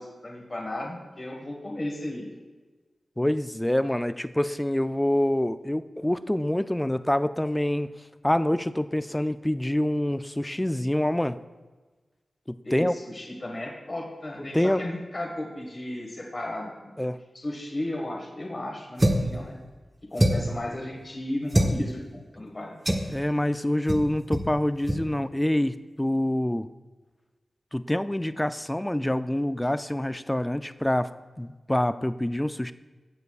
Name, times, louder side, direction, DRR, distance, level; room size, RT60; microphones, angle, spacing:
voice 1, 0.0-2.2 12.6-16.9 17.3-19.6 20.1-22.8, left 1 dB, 40° left, -1 dB, 1.6 m, -34 dB
voice 2, 3.2-7.9 8.2-11.4 12.7-12.9 14.5-14.8 17.0-17.2 23.1-26.7 27.7-31.1 31.4-32.7, left 1 dB, 10° left, 13 dB, 0.3 m, -26 dB
sound 1, 19.0-19.3 20.2-20.6 21.5-21.8 22.9-23.1 23.9-24.1 24.3-24.5 24.8-25.0, right 1 dB, 20° right, 1.0 m, -23 dB
15.0 x 6.7 x 2.4 m, 1.3 s
wide cardioid pair, 75°, 0 cm